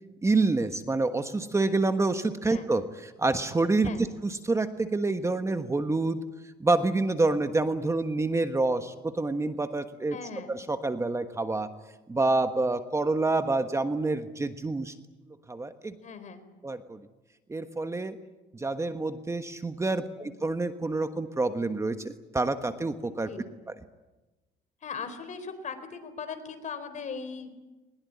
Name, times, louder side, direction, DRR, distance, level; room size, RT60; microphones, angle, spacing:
voice 1, 0.2-6.2 6.6-10.2 10.5-11.7 12.1-14.9 15.5-15.9 16.6-17.0 17.5-18.2 18.5-23.3, right 3 dB, 15° right, 8 dB, 1.4 m, -27 dB
voice 2, 10.1-10.5 16.0-16.4 20.2-20.3 23.2-23.4 24.8-27.5, left 5 dB, 45° left, 9 dB, 4.3 m, -39 dB
21.5 x 21.0 x 9.8 m, 1.1 s
cardioid pair, 110°, 17 cm